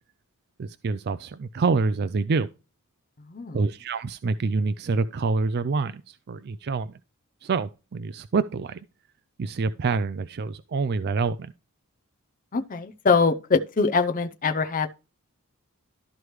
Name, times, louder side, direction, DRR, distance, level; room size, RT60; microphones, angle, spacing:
voice 1, 0.6-2.5 3.5-6.9 7.4-8.8 9.4-11.5, right 4 dB, 50° right, 0.4 m, -26 dB
voice 2, 3.3-3.6 12.5-14.9, left 4 dB, 35° left, 0.6 m, -23 dB
12.5 x 4.8 x 3.1 m
head